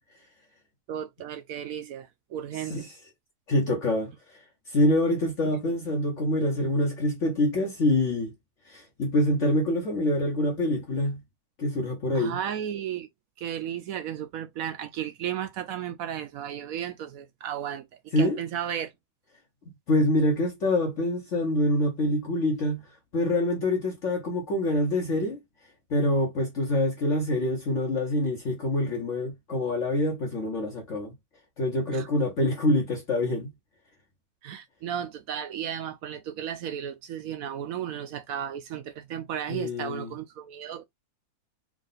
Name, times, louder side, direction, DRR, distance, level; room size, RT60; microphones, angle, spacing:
voice 1, 0.9-2.8 12.1-13.1 13.4-17.8 18.2-18.9 31.9-32.1 34.4-40.8, right 9 dB, 70° right, 0.9 m, -34 dB
voice 2, 3.5-4.4 4.7-8.3 8.7-11.2 11.6-12.4 18.1-18.4 19.9-22.8 23.1-25.4 25.9-31.1 31.6-33.5 39.5-40.1, left 1 dB, 55° left, 1.1 m, -25 dB
3.7 x 2.3 x 3.9 m
omnidirectional pair, 1.7 m